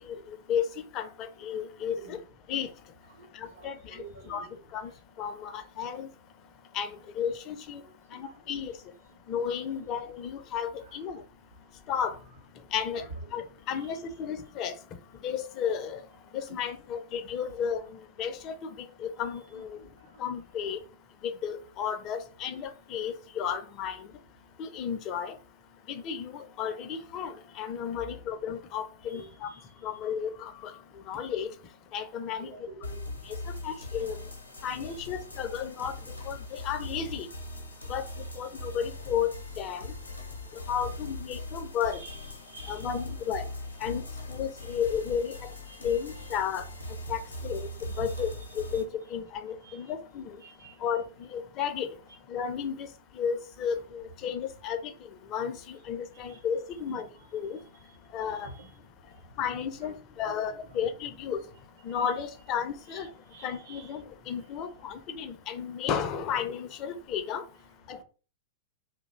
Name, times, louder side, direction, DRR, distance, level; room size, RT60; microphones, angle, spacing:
voice 1, 0.1-2.2 2.5-2.7 3.3-4.4 4.7-4.9 5.2-6.1 6.7-7.8 8.1-8.8 9.3-11.2 11.9-12.2 12.7-13.1 13.3-14.7 15.2-16.0 16.3-19.8 20.2-20.8 21.2-24.1 24.6-25.4 25.9-29.5 29.8-30.7 31.1-31.5 31.9-32.5 33.3-33.4 33.6-34.2 34.6-35.9 36.3-37.3 37.9-38.0 38.4-39.3 39.6-39.9 40.7-42.0 42.7-43.4 43.8-44.0 44.3-45.5 45.8-46.6 47.1-47.7 48.0-48.3 48.5-50.4 50.8-51.0 51.3-51.9 52.3-52.9 53.2-54.9 55.3-57.1 57.3-57.6 58.1-58.5 59.4-61.4 61.8-63.1 63.4-67.4 67.9-68.0, left 8 dB, 35° left, 0.4 m, -33 dB
voice 2, 1.9-2.2 3.5-4.6 8.2-8.3 9.7-9.9 10.8-11.0 12.9-13.1 13.7-13.9 19.5-19.6 29.1-29.6 32.3-33.0 34.9-35.0 41.9-42.9 44.6-44.8 45.2-45.4 45.7-46.4 47.9-48.3 49.6-49.8 50.4-50.7 56.3-56.4 56.9-57.0 58.3-58.7 59.8-60.0 60.3-60.4 60.7-60.8 62.9-64.0, right 3 dB, 60° right, 0.7 m, -49 dB
sound 1, 32.8-48.8, left 1 dB, 85° left, 0.5 m, -40 dB
2.4 x 2.0 x 2.9 m
figure-of-eight pair, 95°, 0 cm